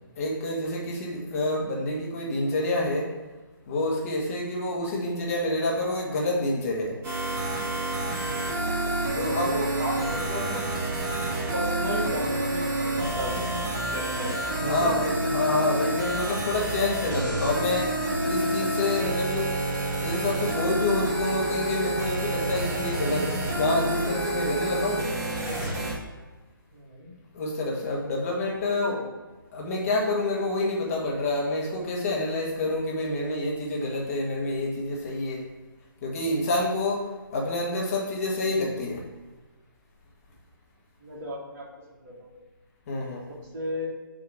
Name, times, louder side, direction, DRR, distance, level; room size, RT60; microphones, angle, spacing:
voice 1, 0.2-3.1 3.7-7.0 9.1-9.5 14.6-18.0 18.2-19.6 20.0-25.1 27.3-28.9 29.5-35.5 36.0-39.1 42.9-43.3, left 2 dB, 40° left, -2 dB, 1.7 m, -28 dB
sound 1, 7.0-25.9, right 1 dB, 20° right, 1.6 m, -28 dB
voice 2, 9.4-10.6 11.5-14.9 17.5-17.7 26.7-27.1 28.7-29.1 41.0-41.7 42.0-42.3 43.5-43.9, equal, 40° right, -4 dB, 2.2 m, -34 dB
6.4 x 3.5 x 6.1 m, 1.3 s
figure-of-eight pair, 145°, 12 cm